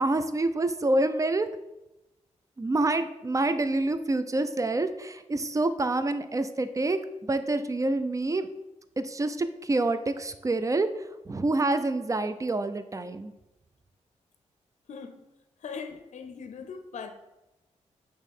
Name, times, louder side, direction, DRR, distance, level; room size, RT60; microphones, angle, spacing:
voice 1, 0.0-1.5 2.6-8.5 9.0-10.9 11.3-13.3, right 2 dB, 25° right, 11 dB, 0.5 m, -27 dB
voice 2, 14.9-15.2 15.6-17.1, left 5 dB, 70° left, 8 dB, 0.6 m, -40 dB
6.3 x 3.1 x 5.4 m, 0.95 s
cardioid pair, 70°, 13 cm